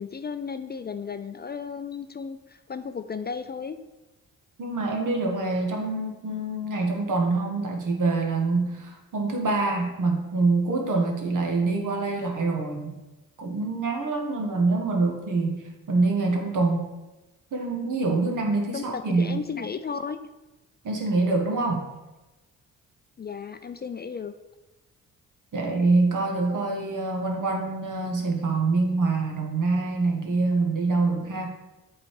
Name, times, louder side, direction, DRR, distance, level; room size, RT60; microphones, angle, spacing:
voice 1, 0.0-3.8 18.7-20.2 23.2-24.3, left 6 dB, 30° left, 10 dB, 0.4 m, -34 dB
voice 2, 4.6-13.0 13.4-16.9 17.5-19.4 20.8-21.9 25.5-31.5, right 3 dB, 60° right, 1 dB, 1.7 m, -25 dB
8.2 x 4.1 x 4.8 m, 1.1 s
supercardioid pair, 55°, 35 cm